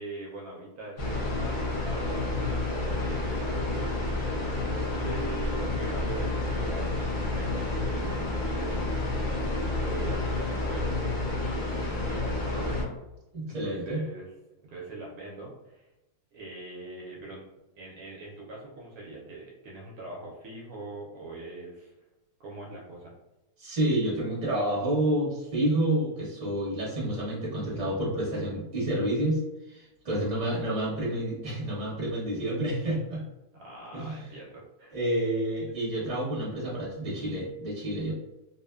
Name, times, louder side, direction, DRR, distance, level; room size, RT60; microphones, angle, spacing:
voice 1, 0.0-3.9 4.5-10.9 11.4-12.9 13.5-14.3 14.7-15.9 16.3-17.4 17.8-21.9 22.4-23.1 30.2-30.5 33.6-34.9 35.7-35.8, right 2 dB, 70° right, -3 dB, 1.0 m, -42 dB
sound 1, 1.0-12.8, left 2 dB, 75° left, 0.5 m, -30 dB
voice 2, 13.3-14.0 23.6-33.2 33.9-34.3 34.9-38.1, right 1 dB, 30° right, -7 dB, 1.0 m, -29 dB
2.8 x 2.1 x 2.2 m, 0.96 s
omnidirectional pair, 1.7 m